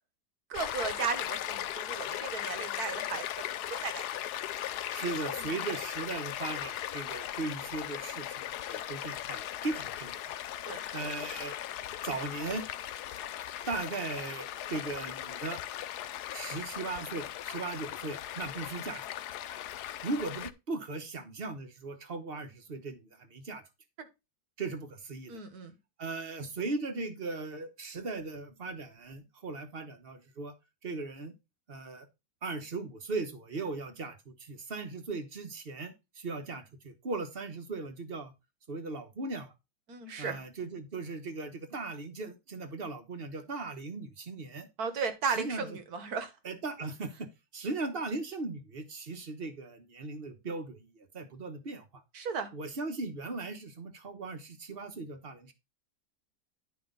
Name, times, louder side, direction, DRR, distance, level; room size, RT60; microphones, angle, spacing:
Stream, 0.5-20.5, left 12 dB, 75° left, 1.2 m, -38 dB
voice 1, 0.5-3.2 3.7-4.0 5.4-5.5 10.7-10.8 24.0-24.1 25.3-25.7 39.9-40.4 44.8-46.3 52.1-52.5, right 5 dB, 65° right, 9 dB, 1.8 m, -35 dB
voice 2, 4.9-10.2 10.9-11.6 12.0-12.6 13.7-15.6 16.3-19.1 20.0-23.6 24.6-25.4 26.0-30.5 30.8-31.3 31.7-32.1 32.4-38.3 38.7-39.5 40.2-44.7 45.3-45.8 46.4-47.3 47.5-50.9 51.1-52.0 52.5-55.5, right 3 dB, 40° right, 8 dB, 1.2 m, -38 dB
10.5 x 5.2 x 3.9 m, 0.25 s
omnidirectional pair, 1.8 m